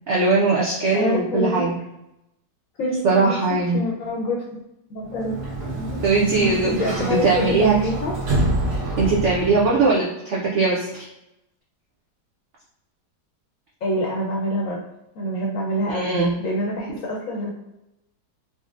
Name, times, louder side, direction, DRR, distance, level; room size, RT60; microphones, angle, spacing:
voice 1, 0.1-1.8 3.0-3.8 6.0-7.7 9.0-11.0 15.9-16.3, right 3 dB, 75° right, -5 dB, 0.6 m, -20 dB
voice 2, 0.9-1.6 2.8-3.4 3.7-4.6 4.9-5.4 5.7-6.0 6.3-8.1 13.8-14.8 15.1-17.5, left 1 dB, 65° left, -3 dB, 0.8 m, -26 dB
Sliding door, 5.1-9.9, right 1 dB, 50° right, 1.3 m, -27 dB
3.8 x 2.1 x 2.5 m, 0.86 s
omnidirectional pair, 2.0 m